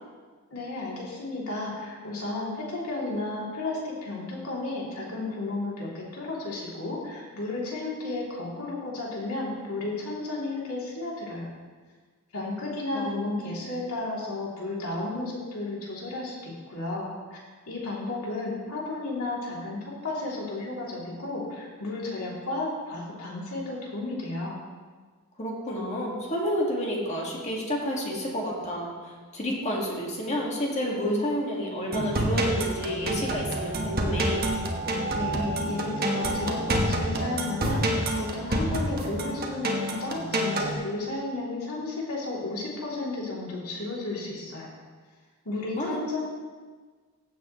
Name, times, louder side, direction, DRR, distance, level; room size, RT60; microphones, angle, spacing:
voice 1, 0.5-11.5 12.3-17.4 17.7-24.6 35.1-44.7 45.4-46.2, left 2 dB, 70° left, -4 dB, 3.1 m, -33 dB
voice 2, 12.9-13.5 25.4-34.5 45.5-46.0, equal, 30° left, -2 dB, 2.0 m, -30 dB
sound 1, 31.9-40.7, right 1 dB, 45° right, 1.3 m, -28 dB
15.5 x 8.0 x 3.2 m, 1.4 s
head